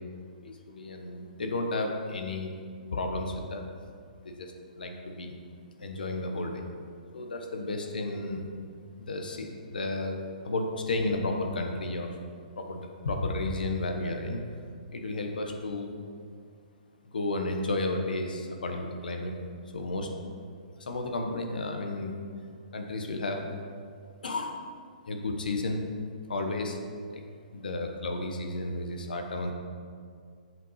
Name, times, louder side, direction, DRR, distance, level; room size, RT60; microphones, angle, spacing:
voice 1, 0.4-2.5 2.9-3.6 4.2-5.3 5.8-6.6 7.1-8.4 9.0-10.2 10.4-12.1 12.6-14.4 14.9-15.9 17.1-19.3 19.7-20.1 20.4-20.5 20.8-22.2 22.7-23.4 24.2-24.6 25.1-25.8 26.3-26.7 27.1-27.2 27.5-29.5, left 2 dB, 85° left, 3 dB, 1.2 m, -32 dB
7.6 x 5.8 x 5.7 m, 2.1 s
hypercardioid pair, 145°, 5 cm